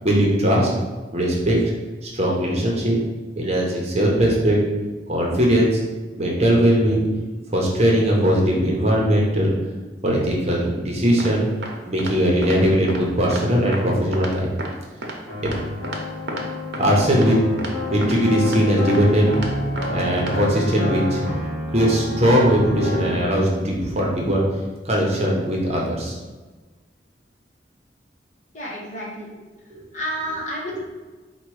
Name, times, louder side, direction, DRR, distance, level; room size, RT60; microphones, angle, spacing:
voice 1, 0.0-0.7 1.1-1.6 2.0-3.0 3.4-4.6 5.1-5.8 6.1-7.0 7.5-9.5 10.0-11.5 11.9-14.5 16.8-17.4 17.9-19.3 19.9-21.2 21.7-24.4 24.8-26.2 29.7-29.8, equal, 35° right, -2 dB, 0.8 m, -19 dB
sound 1, 11.2-11.3 11.6-11.7 12.0-12.1 12.4-12.5 12.9-13.0 13.3-13.4 13.7-13.8 14.1-14.3 14.6-14.7 15.0-15.1 15.5-15.6 15.8-16.0 16.3-16.4 16.7-16.9 17.2-17.3 17.6-17.7 18.0-18.2 18.5-18.6 18.9-19.0 19.3-19.5 19.8-19.9 20.2-20.3, right 2 dB, 80° right, 0.7 m, -31 dB
sound 2, 15.3-23.2, left 2 dB, 15° left, 1.4 m, -28 dB
voice 2, 28.5-29.3 29.9-30.8, equal, 40° left, -4 dB, 1.1 m, -30 dB
4.3 x 2.3 x 4.7 m, 1.3 s
head